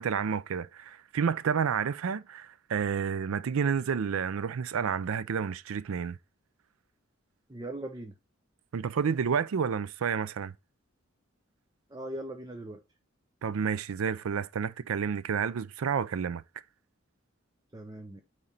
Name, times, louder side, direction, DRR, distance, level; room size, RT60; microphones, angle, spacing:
voice 1, 0.0-6.2 8.7-10.5 13.4-16.4, right 6 dB, 90° right, 0.4 m, -30 dB
voice 2, 7.5-8.1 11.9-12.8 17.7-18.2, right 1 dB, 20° right, 0.6 m, -39 dB
8.7 x 3.2 x 4.1 m
head